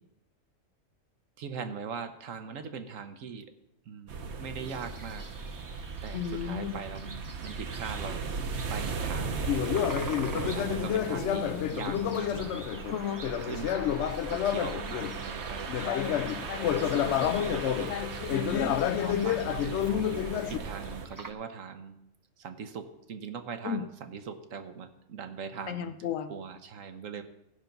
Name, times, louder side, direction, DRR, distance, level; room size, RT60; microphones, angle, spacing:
voice 1, 1.4-3.5 3.8-5.3 6.0-8.3 8.7-9.9 10.4-12.6 13.4-16.2 16.6-17.9 19.0-19.9 20.5-22.0 22.4-25.9 26.3-27.2, right 6 dB, 80° right, 8 dB, 1.3 m, -41 dB
sound 1, 4.1-21.1, right 5 dB, 60° right, 1.1 m, -37 dB
sound 2, 4.7-21.3, right 3 dB, 20° right, 0.5 m, -50 dB
voice 2, 6.1-6.8 11.1-11.7 12.9-13.2 18.3-19.2 23.6-23.8 25.7-26.3, left 7 dB, 85° left, 10 dB, 1.2 m, -34 dB
Conversation, 9.4-15.2 15.7-20.6, left 10 dB, 65° left, 0.8 m, -29 dB
15.0 x 5.8 x 5.3 m, 0.85 s
omnidirectional pair, 1.3 m